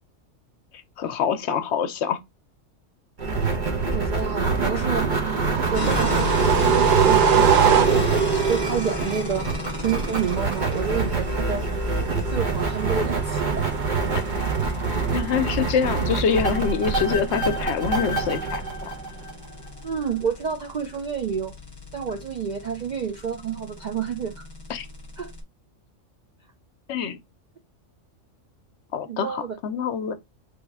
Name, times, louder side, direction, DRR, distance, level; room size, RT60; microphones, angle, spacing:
voice 1, 1.0-2.2 15.1-18.9 24.7-24.9 26.9-27.2 28.9-30.1, left 6 dB, 65° left, 0.8 m, -25 dB
sound 1, 3.2-19.7, right 4 dB, 40° right, 1.0 m, -25 dB
voice 2, 3.9-5.1 5.7-9.5 9.8-11.7 12.3-13.7 19.8-21.5 21.9-24.5 25.2-25.3 29.1-29.5, right 7 dB, 60° right, 0.4 m, -29 dB
sound 2, 5.1-8.3, right 8 dB, 85° right, 1.1 m, -22 dB
sound 3, 5.7-25.4, left 2 dB, 20° left, 1.0 m, -34 dB
3.4 x 3.1 x 4.7 m
omnidirectional pair, 1.3 m